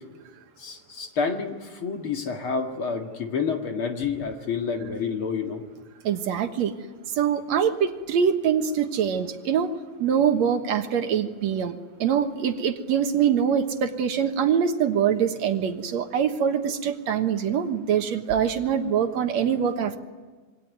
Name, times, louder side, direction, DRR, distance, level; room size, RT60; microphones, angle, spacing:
voice 1, 0.6-5.6, left 5 dB, 50° left, 3 dB, 2.6 m, -29 dB
voice 2, 6.0-6.7 7.1-9.7 10.0-20.0, right 8 dB, 70° right, 6 dB, 2.5 m, -24 dB
27.0 x 23.5 x 9.4 m, 1.3 s
omnidirectional pair, 3.3 m